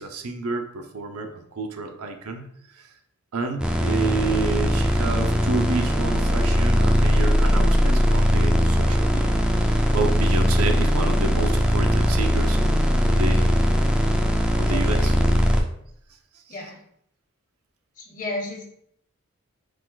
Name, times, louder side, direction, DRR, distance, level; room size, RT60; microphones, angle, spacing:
voice 1, 0.0-2.5 2.7-2.9 3.3-13.5 14.6-15.1 16.5-16.6, right 4 dB, 85° right, 5 dB, 0.6 m, -30 dB
sound 1, 3.6-15.6, equal, 5° right, 0.3 m, -20 dB
voice 2, 14.6-15.2 16.5-16.8 18.0-18.7, left 2 dB, 35° left, 1 dB, 0.7 m, -33 dB
5.0 x 2.3 x 3.8 m, 0.70 s
head